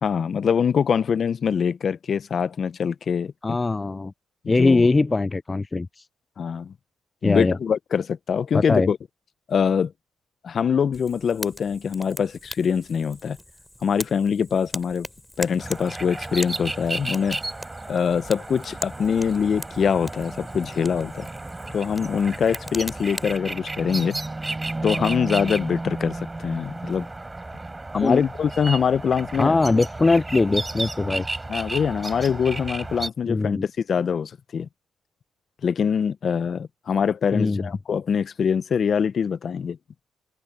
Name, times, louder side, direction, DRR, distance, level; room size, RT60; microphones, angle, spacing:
voice 1, 0.0-3.6 4.4-4.9 6.4-6.7 7.2-9.0 9.5-9.9 10.4-13.4 13.8-15.1 15.4-17.4 17.9-21.3 21.7-24.1 24.8-27.1 27.9-29.5 31.5-34.7 35.6-39.8, left 7 dB, 50° left, 0.7 m, -24 dB
voice 2, 3.4-4.1 4.5-6.0 7.2-7.6 8.5-8.9 28.0-28.2 29.4-31.3 33.3-33.6 37.3-37.7, left 3 dB, 25° left, 0.3 m, -21 dB
Fire, 10.9-23.4, left 1 dB, 5° left, 7.8 m, -40 dB
sound 1, 15.6-33.1, right 2 dB, 15° right, 4.1 m, -33 dB
open air
cardioid pair, 90°, 0 cm